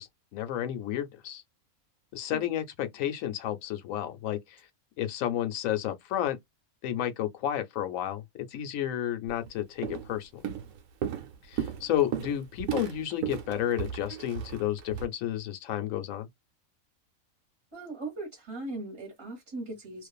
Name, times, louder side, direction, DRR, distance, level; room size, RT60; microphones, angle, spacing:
voice 1, 0.0-1.4 2.1-4.4 5.0-6.4 6.8-8.2 8.5-10.3 11.5-16.3, left 11 dB, 75° left, 1.0 m, -31 dB
Walk footsteps, 9.3-9.5 9.8-10.2 10.4-15.1, right 9 dB, 85° right, 1.1 m, -35 dB
voice 2, 17.7-20.1, right 2 dB, 20° right, 1.2 m, -39 dB
2.5 x 2.4 x 2.3 m
omnidirectional pair, 1.5 m